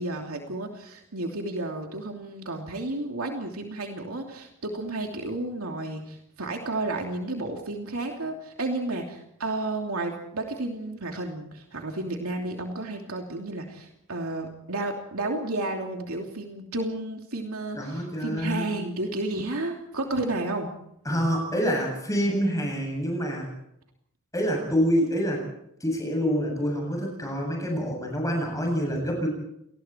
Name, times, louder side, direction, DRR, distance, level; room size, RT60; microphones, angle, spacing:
voice 1, 0.0-20.7, right 2 dB, 75° right, 2 dB, 2.9 m, -32 dB
voice 2, 17.8-18.7 21.1-23.5 24.3-25.5 25.8-29.3, equal, 15° left, 1 dB, 7.8 m, -26 dB
28.5 x 20.5 x 4.6 m, 0.76 s
head